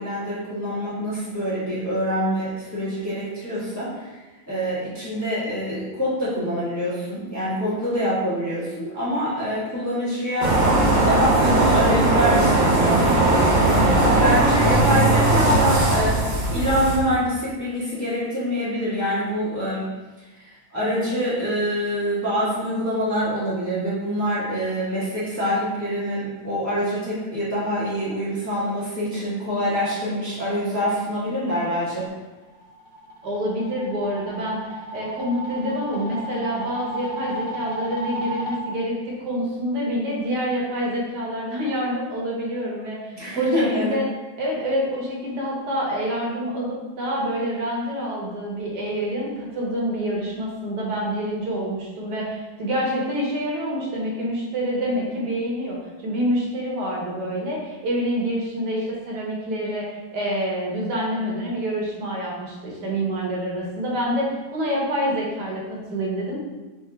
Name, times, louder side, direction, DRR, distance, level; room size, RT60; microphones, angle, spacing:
voice 1, 0.0-4.1 4.5-19.8 20.4-32.0 43.1-44.0, equal, 10° left, -11 dB, 1.2 m, -25 dB
sound 1, 10.4-17.0, right 2 dB, 50° right, 0.5 m, -18 dB
sound 2, 32.4-38.6, equal, 65° left, 0.5 m, -33 dB
voice 2, 33.2-44.0 44.4-55.8 56.0-66.4, equal, 80° right, -3 dB, 1.7 m, -27 dB
4.2 x 3.4 x 3.3 m, 1.2 s
omnidirectional pair, 1.8 m